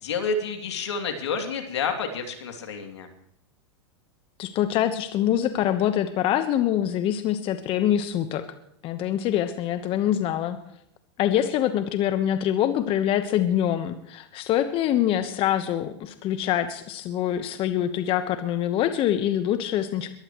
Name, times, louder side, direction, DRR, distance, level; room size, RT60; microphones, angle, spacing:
voice 1, 0.0-3.1, left 5 dB, 80° left, 4 dB, 2.9 m, -29 dB
voice 2, 4.4-8.4 8.8-10.6 11.2-20.1, left 11 dB, 40° left, 9 dB, 1.2 m, -25 dB
22.0 x 15.0 x 3.2 m, 0.73 s
hypercardioid pair, 110°, 14 cm